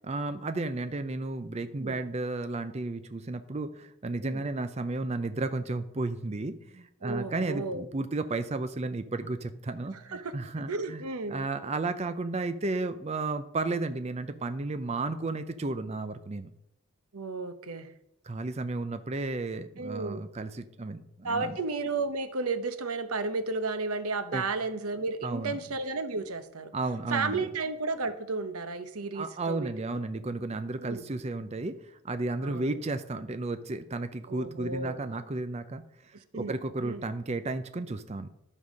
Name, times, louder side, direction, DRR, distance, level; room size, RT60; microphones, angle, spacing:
voice 1, 0.0-11.0 11.3-16.5 18.2-21.5 24.3-24.5 25.2-25.6 26.7-27.4 29.1-38.3, right 2 dB, 30° right, 10 dB, 0.5 m, -33 dB
voice 2, 7.0-7.9 9.9-11.5 17.1-17.9 19.8-20.2 21.2-26.7 27.1-30.0 30.8-31.0 32.4-32.8 34.3-35.0 36.3-36.5 36.8-37.1, right 3 dB, 85° right, 11 dB, 0.9 m, -33 dB
11.5 x 5.4 x 6.3 m, 0.81 s
head